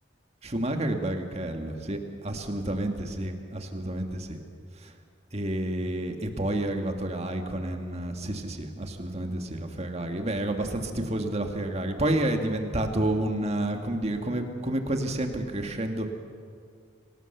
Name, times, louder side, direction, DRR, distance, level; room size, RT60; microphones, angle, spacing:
voice 1, 0.4-2.0 2.2-4.4 5.3-16.1, right 1 dB, 35° right, 5 dB, 1.8 m, -30 dB
25.0 x 18.5 x 6.7 m, 2.2 s
head